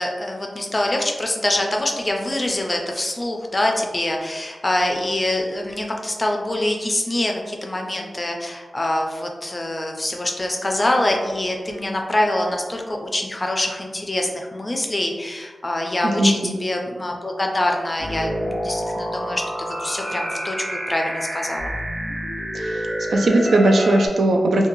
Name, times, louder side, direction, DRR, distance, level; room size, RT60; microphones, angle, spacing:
voice 1, 0.0-20.6 20.9-21.8, left 1 dB, 25° left, 2 dB, 0.4 m, -24 dB
voice 2, 16.2-16.5 22.5-24.7, right 1 dB, 90° right, 2 dB, 0.3 m, -18 dB
sound 1, 18.0-24.1, equal, 30° right, 0.9 m, -28 dB
2.9 x 2.2 x 2.6 m, 1.4 s
wide cardioid pair, 95°, 0 cm